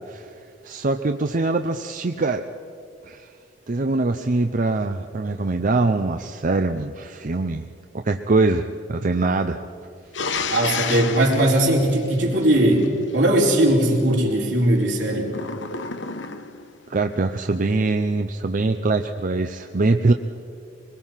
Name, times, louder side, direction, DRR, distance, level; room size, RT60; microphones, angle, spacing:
voice 1, 0.6-2.5 3.0-3.3 3.7-7.7 7.9-9.6 16.9-20.1, right 3 dB, 45° right, 7 dB, 0.6 m, -23 dB
sound 1, 10.1-12.9 15.3-16.7, left 5 dB, 80° left, 1.1 m, -30 dB
voice 2, 10.5-15.3, right 1 dB, 80° right, -2 dB, 4.3 m, -19 dB
23.0 x 21.0 x 5.7 m, 2.4 s
head